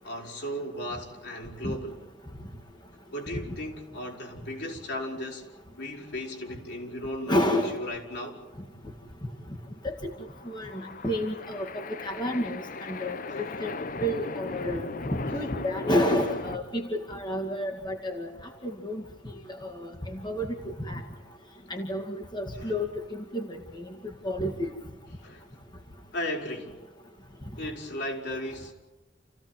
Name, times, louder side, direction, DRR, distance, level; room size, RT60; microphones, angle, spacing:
voice 1, 0.0-2.0 3.1-5.4 5.8-8.4 13.3-13.6 22.6-22.7 25.2-25.5 26.1-26.8 27.6-28.7, left 1 dB, 65° left, 5.8 m, -36 dB
voice 2, 7.3-7.8 9.8-10.1 10.5-13.7 14.0-14.9 15.3-18.3 18.6-19.0 19.6-20.6 20.9-21.0 21.7-23.9 24.2-24.7, equal, 25° left, 2.2 m, -30 dB
sound 1, 10.2-16.6, left 3 dB, 45° left, 0.7 m, -37 dB
29.5 x 16.0 x 9.0 m
head